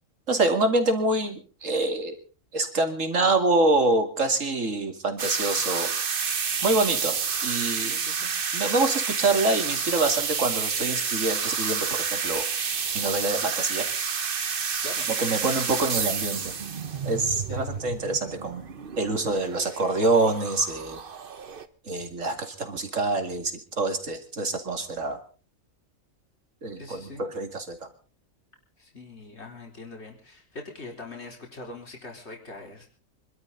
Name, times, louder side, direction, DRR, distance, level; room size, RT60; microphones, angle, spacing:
voice 1, 0.3-2.2 2.5-5.9 6.6-7.9 8.5-12.4 12.9-13.8 15.2-16.5 17.0-18.6 19.0-21.0 21.8-25.2 26.6-27.9, right 2 dB, 70° right, 6 dB, 2.9 m, -26 dB
sound 1, 5.2-21.7, right 6 dB, 45° right, 1.2 m, -30 dB
voice 2, 7.8-8.3 14.8-15.1 17.5-17.9 26.8-27.2 28.8-32.9, left 2 dB, 55° left, 1 dB, 4.3 m, -42 dB
26.0 x 12.5 x 4.0 m, 0.37 s
omnidirectional pair, 1.4 m